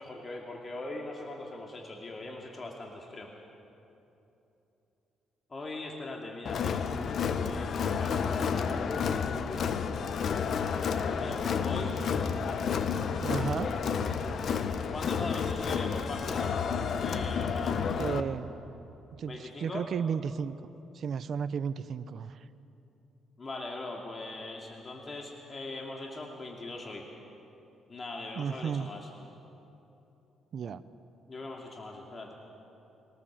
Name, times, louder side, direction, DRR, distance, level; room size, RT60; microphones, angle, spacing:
voice 1, 0.0-3.3 5.5-6.9 7.4-9.1 10.7-12.0 14.9-18.0 19.2-19.9 23.4-27.1 27.9-29.1 31.3-32.3, left 2 dB, 35° left, 0 dB, 2.5 m, -41 dB
Crowd, 6.4-18.2, left 6 dB, 60° left, 1.1 m, -30 dB
voice 2, 13.2-13.7 18.0-18.5 19.2-20.7 20.9-22.4 28.4-28.9 30.5-30.8, right 7 dB, 60° right, 13 dB, 0.7 m, -33 dB
22.5 x 19.0 x 7.4 m, 2.9 s
cardioid pair, 90°, 0 cm